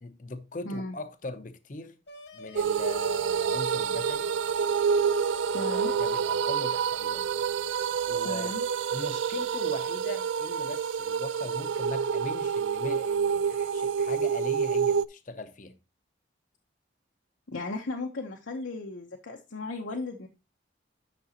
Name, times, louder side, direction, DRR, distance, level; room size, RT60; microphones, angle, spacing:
voice 1, 0.0-2.0 2.3-4.3 5.6-7.3 8.1-8.6 8.9-15.8, left 2 dB, 40° left, 0.7 m, -40 dB
voice 2, 0.6-1.0 5.5-5.9 8.2-8.6 17.5-20.3, left 2 dB, 85° left, 1.0 m, -36 dB
sound 1, 2.1-6.5, left 2 dB, 65° left, 1.4 m, -47 dB
sound 2, 2.6-15.1, right 7 dB, 75° right, 0.4 m, -28 dB
9.5 x 6.0 x 2.9 m
head